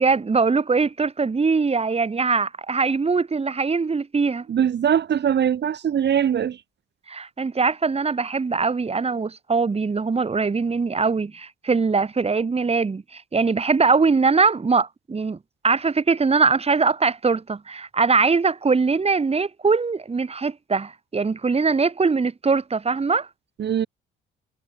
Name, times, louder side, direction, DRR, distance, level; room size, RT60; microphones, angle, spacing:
voice 1, 0.0-4.4 7.1-15.4 15.6-23.3, right 4 dB, 30° right, 6.4 m, -22 dB
voice 2, 4.5-6.6 23.6-23.9, right 9 dB, 60° right, 5.7 m, -21 dB
cardioid pair, 90°, 20 cm